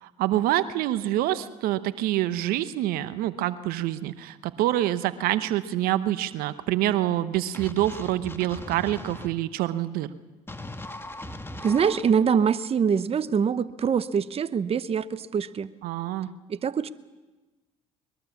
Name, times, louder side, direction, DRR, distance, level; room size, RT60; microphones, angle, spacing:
voice 1, 0.0-10.1 15.8-16.3, right 14 dB, 70° right, 14 dB, 0.9 m, -26 dB
sound 1, 7.5-9.3 10.5-12.0, left 1 dB, 15° left, 2.0 m, -39 dB
voice 2, 11.6-15.7 16.5-16.9, right 7 dB, 40° right, 14 dB, 0.8 m, -24 dB
22.0 x 21.5 x 7.1 m, 1.2 s
hypercardioid pair, 60°, 16 cm